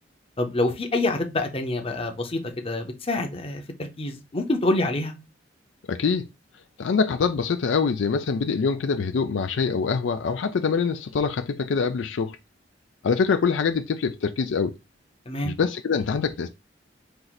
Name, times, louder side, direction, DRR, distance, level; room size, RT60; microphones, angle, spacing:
voice 1, 0.4-5.2 15.3-15.6, left 2 dB, 30° left, 0.8 m, -26 dB
voice 2, 5.9-6.3 6.8-12.4 13.0-14.7 15.4-16.5, left 5 dB, 75° left, 0.4 m, -24 dB
4.4 x 2.6 x 3.9 m
head